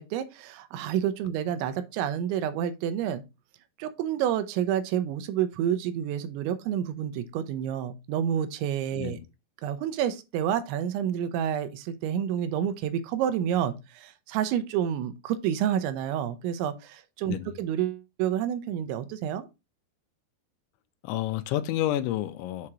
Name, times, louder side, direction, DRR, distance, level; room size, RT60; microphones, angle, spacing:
voice 1, 0.0-3.2 3.8-9.2 9.6-19.5, right 10 dB, 85° right, 2.9 m, -29 dB
voice 2, 8.9-9.2 17.3-17.6 21.0-22.7, left 13 dB, 85° left, 2.9 m, -30 dB
7.4 x 2.9 x 4.7 m
omnidirectional pair, 5.2 m